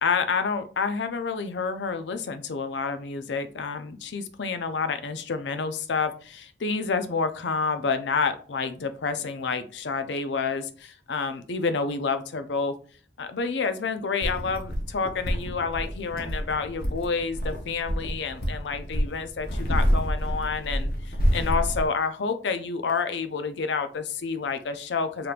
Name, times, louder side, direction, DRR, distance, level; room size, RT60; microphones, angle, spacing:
voice 1, 0.0-12.7 13.2-25.3, left 5 dB, 80° left, 10 dB, 0.5 m, -29 dB
sound 1, 14.2-21.9, equal, 55° left, 0.9 m, -28 dB
5.0 x 3.0 x 2.4 m, 0.41 s
head